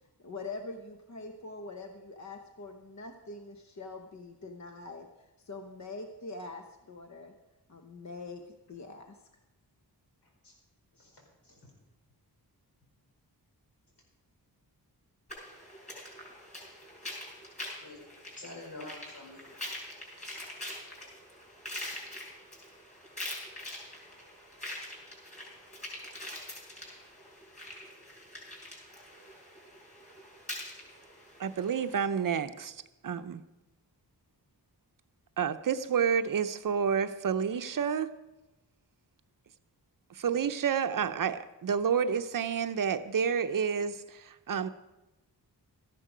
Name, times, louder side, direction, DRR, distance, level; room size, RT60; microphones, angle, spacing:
voice 1, 0.2-5.1 5.4-7.3 7.7-8.4 8.7-9.2, left 3 dB, 45° left, 5 dB, 1.0 m, -43 dB
voice 2, 11.0-11.6 17.8-18.0 18.4-19.6, left 2 dB, 80° left, -2 dB, 5.0 m, -47 dB
sound 1, 15.3-32.0, left 1 dB, 20° left, 5.8 m, -44 dB
voice 3, 31.4-33.4 35.4-38.1 40.1-44.7, right 7 dB, 55° right, 10 dB, 0.7 m, -29 dB
13.5 x 11.0 x 5.0 m, 1.0 s
wide cardioid pair, 95°, 39 cm